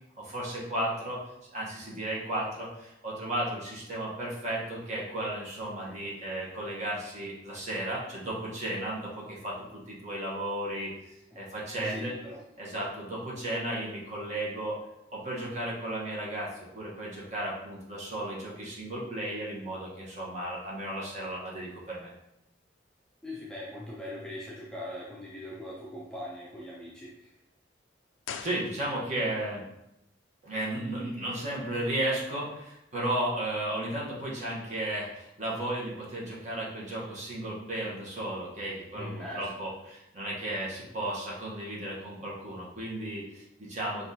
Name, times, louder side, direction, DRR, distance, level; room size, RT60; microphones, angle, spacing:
voice 1, 0.2-1.2 1.5-10.9 11.3-12.1 12.6-14.8 15.1-22.1 28.4-29.6 30.4-44.1, right 1 dB, 40° right, -5 dB, 1.1 m, -34 dB
voice 2, 11.7-12.4 23.2-27.3 38.9-39.5, left 1 dB, 5° left, -6 dB, 0.5 m, -41 dB
sound 1, 28.2-29.3 29.6-29.7, left 7 dB, 85° left, 0.3 m, -42 dB
5.7 x 2.5 x 2.8 m, 0.85 s
head